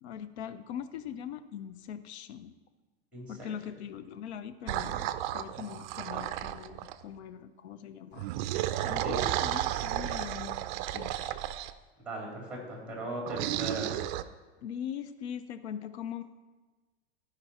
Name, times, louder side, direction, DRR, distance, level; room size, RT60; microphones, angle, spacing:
voice 1, 0.0-2.5 3.3-8.3 8.8-11.4 14.6-16.2, left 9 dB, 85° left, 12 dB, 0.6 m, -41 dB
voice 2, 3.1-3.5 9.0-9.2 12.0-14.0, right 1 dB, 5° right, -2 dB, 3.2 m, -38 dB
sound 1, 4.7-7.0 8.1-11.7 13.3-14.2, right 13 dB, 45° right, 0.5 m, -33 dB
15.0 x 5.2 x 4.2 m, 1.3 s
supercardioid pair, 140°, 32 cm